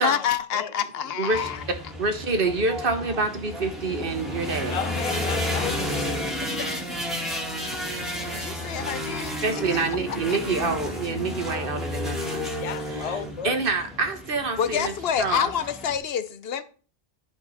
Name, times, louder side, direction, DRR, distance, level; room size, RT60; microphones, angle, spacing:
voice 1, 0.0-1.6 8.3-9.4 10.3-10.4 14.6-16.6, left 8 dB, 70° left, 0.9 m, -27 dB
voice 2, 1.2-1.5 2.0-4.8 9.4-12.5 12.9-15.5, right 3 dB, 60° right, 1.3 m, -27 dB
sound 1, 1.3-16.0, left 1 dB, ahead, 2.1 m, -32 dB
voice 3, 4.6-6.5 12.6-13.5, left 8 dB, 45° left, 0.6 m, -34 dB
10.5 x 5.3 x 4.1 m
omnidirectional pair, 1.0 m